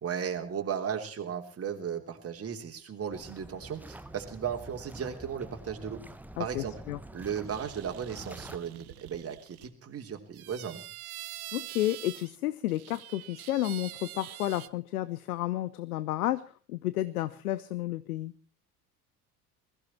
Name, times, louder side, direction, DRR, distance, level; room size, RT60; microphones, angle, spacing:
voice 1, 0.0-6.0 6.4-6.7 7.1-10.8, right 7 dB, 30° right, 4 dB, 3.3 m, -36 dB
sound 1, 3.1-8.6, right 1 dB, 5° right, 1.1 m, -47 dB
voice 2, 6.4-7.0 11.5-18.3, left 15 dB, 65° left, 17 dB, 0.9 m, -31 dB
sound 2, 7.5-9.7 10.3-12.4 12.7-14.7, right 16 dB, 65° right, 0.9 m, -45 dB
21.5 x 15.0 x 4.4 m, 0.38 s
figure-of-eight pair, 60°, 47 cm